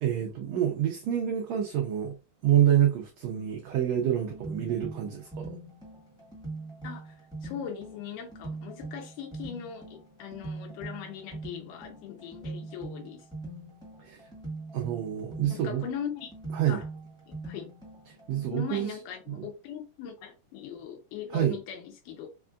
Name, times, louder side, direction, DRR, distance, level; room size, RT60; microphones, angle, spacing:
voice 1, 0.0-2.2 2.4-5.6 14.0-14.2 14.7-15.8 16.5-16.8 18.1-18.9 19.3-19.5 21.3-21.6, right 10 dB, 85° right, 1.5 m, -27 dB
sound 1, 3.9-18.8, right 2 dB, 5° left, 0.8 m, -42 dB
voice 2, 6.8-13.3 15.5-16.3 16.7-16.9 17.3-17.7 18.5-22.3, left 8 dB, 85° left, 2.2 m, -40 dB
5.1 x 2.3 x 2.5 m
omnidirectional pair, 3.7 m